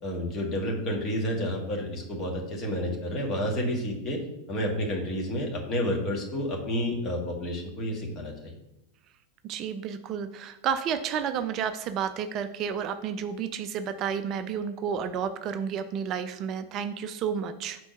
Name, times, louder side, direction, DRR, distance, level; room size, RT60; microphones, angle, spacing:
voice 1, 0.0-4.2 4.5-8.5, equal, 30° left, 1 dB, 1.5 m, -30 dB
voice 2, 9.4-17.8, right 7 dB, 35° right, 10 dB, 0.3 m, -31 dB
4.4 x 4.4 x 5.7 m, 0.88 s
figure-of-eight pair, 90°, 0 cm